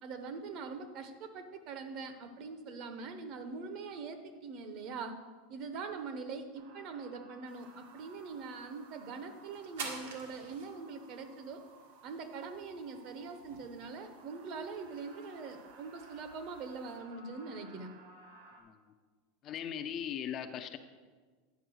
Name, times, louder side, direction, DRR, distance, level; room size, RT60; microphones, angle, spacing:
voice 1, 0.0-5.2 5.5-11.6 12.0-17.9, right 4 dB, 40° right, 8 dB, 0.8 m, -43 dB
sound 1, 6.5-18.6, right 4 dB, 60° right, 1.5 m, -58 dB
sound 2, 7.5-17.0, right 4 dB, 90° right, 1.7 m, -51 dB
voice 2, 19.4-20.8, left 9 dB, 30° left, 8 dB, 0.4 m, -39 dB
9.3 x 4.6 x 6.2 m, 1.5 s
supercardioid pair, 160°, 0 cm